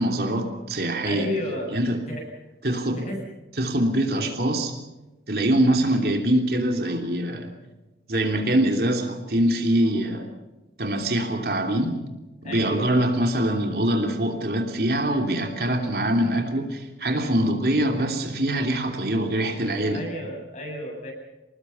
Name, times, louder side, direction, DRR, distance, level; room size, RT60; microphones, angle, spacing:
voice 1, 0.0-1.3 1.7-2.0 2.6-3.0 3.6-4.7 5.3-7.5 8.1-10.3 10.8-12.0 12.4-20.0, right 1 dB, 60° right, 3 dB, 3.1 m, -23 dB
voice 2, 1.0-1.7 2.1-2.2 3.0-3.2 12.4-13.0 19.9-21.1, left 1 dB, 40° left, 1 dB, 8.0 m, -32 dB
26.5 x 20.0 x 5.6 m, 1.0 s
head